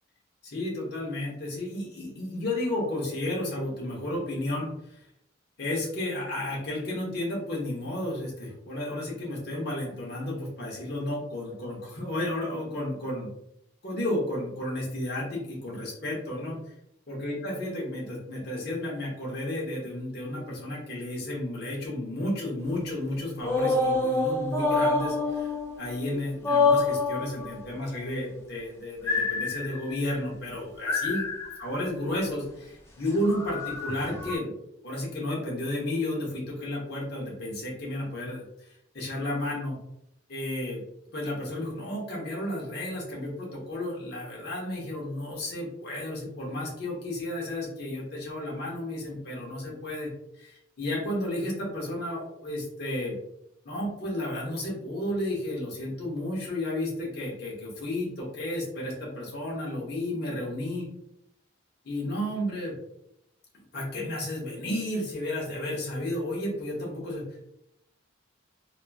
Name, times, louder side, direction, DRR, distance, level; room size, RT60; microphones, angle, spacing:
voice 1, 0.4-4.7 5.6-13.3 13.8-16.6 17.1-31.2 31.6-34.5 34.8-38.4 38.9-39.8 40.3-40.8 41.1-50.1 50.4-53.2 53.6-60.9 61.8-62.8 63.7-67.2, left 1 dB, 50° left, -3 dB, 0.8 m, -32 dB
sound 1, 23.4-26.1 26.4-27.5 29.0-30.0 30.9-31.7 33.1-34.4, left 3 dB, 10° left, 0.3 m, -26 dB
2.9 x 2.4 x 2.2 m, 0.79 s
head